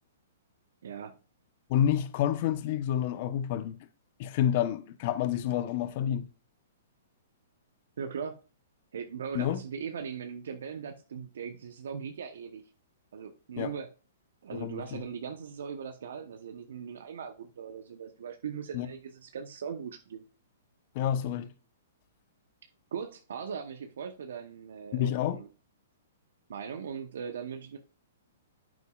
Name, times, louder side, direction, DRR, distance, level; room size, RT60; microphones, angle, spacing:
voice 1, 0.8-1.2 8.0-8.4 8.9-12.6 13.1-13.9 14.4-20.2 22.9-25.5 26.5-27.8, right 7 dB, 70° right, 0.9 m, -39 dB
voice 2, 1.7-3.9 4.2-6.3 9.3-9.6 13.6-13.7 14.5-15.0 18.7-18.9 20.9-21.5 24.9-25.4, left 10 dB, 50° left, 0.9 m, -29 dB
9.2 x 8.2 x 2.4 m
hypercardioid pair, 125°, 0 cm